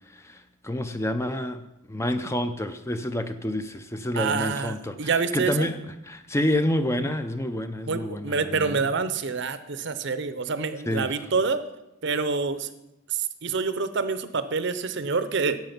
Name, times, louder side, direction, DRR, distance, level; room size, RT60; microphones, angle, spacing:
voice 1, 0.1-8.8 10.9-11.1, left 1 dB, 15° left, 9 dB, 0.5 m, -29 dB
voice 2, 4.1-5.7 7.9-11.6 12.0-12.7 13.1-15.6, right 4 dB, 60° right, 12 dB, 0.7 m, -27 dB
10.5 x 7.8 x 5.9 m, 0.91 s
head